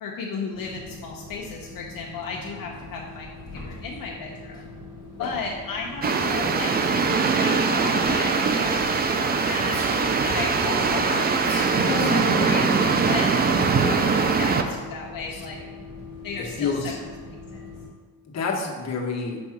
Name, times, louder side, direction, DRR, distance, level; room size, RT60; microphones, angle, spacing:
voice 1, 0.0-4.7 5.2-7.0 7.3-9.8 10.2-13.5 13.8-15.6 16.2-16.7 17.5-17.6, left 4 dB, 70° left, -2 dB, 0.8 m, -34 dB
sound 1, 0.5-17.9, left 2 dB, 10° left, 1.4 m, -42 dB
sound 2, 6.0-14.6, right 4 dB, 30° right, 0.3 m, -22 dB
sound 3, 9.6-10.8 11.4-12.6, left 1 dB, 10° right, 2.0 m, -42 dB
voice 2, 11.7-12.8 15.3-15.5 16.4-17.0 18.3-19.4, left 4 dB, 45° left, -1 dB, 1.0 m, -29 dB
5.3 x 3.6 x 5.8 m, 1.4 s
cardioid pair, 145°, 36 cm